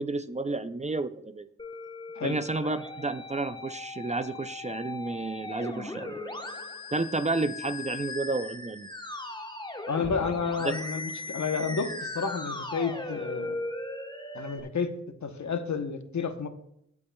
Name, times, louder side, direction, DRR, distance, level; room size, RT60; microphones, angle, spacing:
voice 1, 0.0-1.5 2.2-6.1 6.9-8.9 10.6-10.8, right 3 dB, 25° right, 12 dB, 0.4 m, -31 dB
Musical instrument, 1.6-14.6, left 2 dB, 15° left, 1.1 m, -38 dB
voice 2, 9.9-13.6 14.3-14.9 15.2-16.5, left 5 dB, 75° left, 8 dB, 1.0 m, -30 dB
16.5 x 8.5 x 2.3 m, 0.73 s
wide cardioid pair, 80°, 29 cm